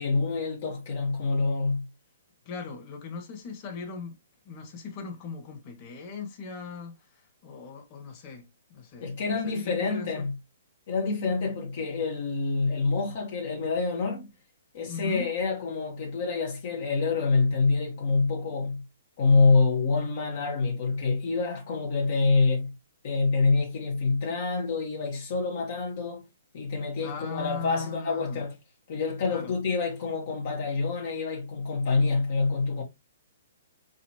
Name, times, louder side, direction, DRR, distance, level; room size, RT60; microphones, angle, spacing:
voice 1, 0.0-1.9 9.0-10.4 10.9-14.3 14.7-18.8 19.2-22.7 23.0-26.2 26.5-28.6 28.9-32.8, left 4 dB, 50° left, 1.3 m, -26 dB
voice 2, 2.4-4.1 4.4-6.9 7.4-9.1 9.4-10.3 14.9-15.3 27.0-28.4 29.3-29.5, left 5 dB, 30° left, 1.7 m, -39 dB
4.1 x 4.1 x 2.9 m
hypercardioid pair, 155°, 0 cm